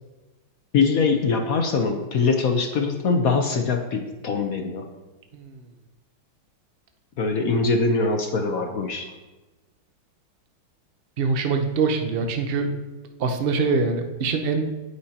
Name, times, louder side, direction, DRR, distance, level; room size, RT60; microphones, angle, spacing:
voice 1, 0.7-4.9 7.2-9.1, left 4 dB, 60° left, 4 dB, 1.0 m, -22 dB
voice 2, 11.2-12.7 13.2-14.7, right 4 dB, 55° right, 5 dB, 0.6 m, -24 dB
19.5 x 6.6 x 2.9 m, 1.1 s
omnidirectional pair, 2.3 m